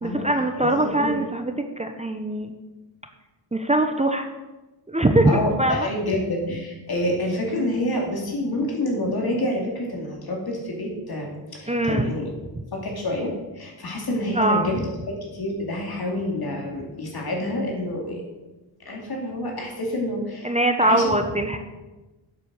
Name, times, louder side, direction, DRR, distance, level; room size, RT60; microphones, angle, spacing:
voice 1, 0.0-2.5 3.5-4.3 4.9-5.9 11.7-12.1 14.4-14.8 20.4-21.6, right 1 dB, 15° right, 6 dB, 0.9 m, -22 dB
voice 2, 0.5-1.2 5.3-12.3 12.7-14.7 15.1-18.2 18.8-20.5 20.8-21.1, left 1 dB, 55° left, 0 dB, 3.7 m, -28 dB
11.5 x 7.8 x 6.5 m, 1.1 s
wide cardioid pair, 115°, 44 cm